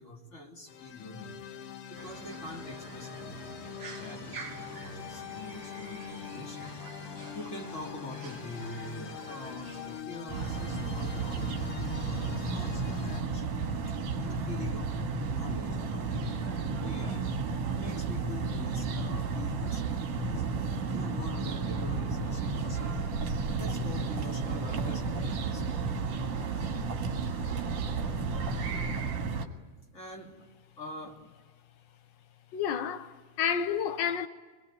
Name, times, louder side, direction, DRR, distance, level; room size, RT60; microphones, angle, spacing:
voice 1, 0.0-1.3 1.9-3.5 3.9-6.7 7.3-13.6 14.2-17.3 17.7-23.1 23.6-26.8 29.9-30.3 30.8-31.2, left 1 dB, 25° left, 3.0 m, -44 dB
sound 1, 0.7-13.2, left 9 dB, 60° left, 1.6 m, -43 dB
sound 2, 2.0-10.0, right 4 dB, 50° right, 3.2 m, -47 dB
sound 3, 10.3-29.5, right 4 dB, 70° right, 3.0 m, -32 dB
voice 2, 32.5-34.3, left 8 dB, 80° left, 1.0 m, -30 dB
26.0 x 21.0 x 9.1 m
omnidirectional pair, 3.3 m